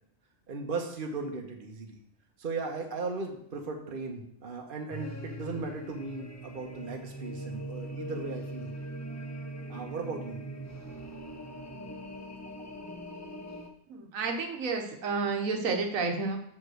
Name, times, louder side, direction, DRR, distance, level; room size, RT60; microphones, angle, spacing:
voice 1, 0.5-2.0 2.4-8.9 9.7-10.4, right 3 dB, 45° right, 2 dB, 1.2 m, -37 dB
sound 1, 4.9-13.7, right 1 dB, 25° left, 0.4 m, -41 dB
voice 2, 13.9-16.4, right 4 dB, 90° right, 3 dB, 1.4 m, -30 dB
5.9 x 5.1 x 6.3 m, 0.71 s
omnidirectional pair, 1.4 m